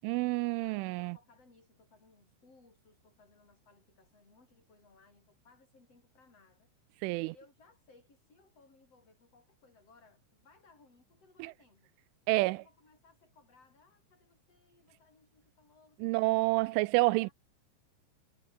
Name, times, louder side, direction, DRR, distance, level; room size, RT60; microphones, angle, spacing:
voice 1, 0.0-1.2 7.0-7.3 11.4-11.5 12.3-12.6 16.0-17.3, right 23 dB, 85° right, 2.8 m, -28 dB
voice 2, 0.6-6.7 7.2-11.9 12.4-17.3, left 3 dB, 30° left, 8.9 m, -64 dB
omnidirectional pair, 5.8 m